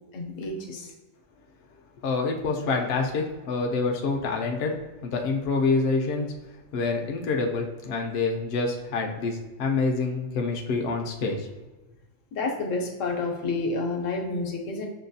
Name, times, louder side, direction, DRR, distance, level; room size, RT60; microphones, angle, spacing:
voice 1, 0.1-0.9 12.3-14.9, left 3 dB, 80° left, 2 dB, 1.0 m, -29 dB
voice 2, 2.0-6.3 6.7-11.5, left 4 dB, 65° left, 1 dB, 0.7 m, -27 dB
6.4 x 2.3 x 2.6 m, 1.1 s
omnidirectional pair, 1.3 m